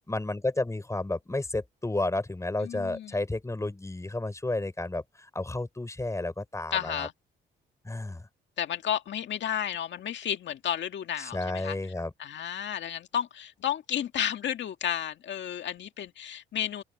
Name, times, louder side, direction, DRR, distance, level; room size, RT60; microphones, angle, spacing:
voice 1, 0.1-7.1 7.8-8.3 11.2-12.1, left 2 dB, 15° left, 5.3 m, -32 dB
voice 2, 2.6-3.1 6.7-7.1 8.6-11.8 12.2-16.8, left 10 dB, 65° left, 2.2 m, -32 dB
cardioid pair, 90°, 20 cm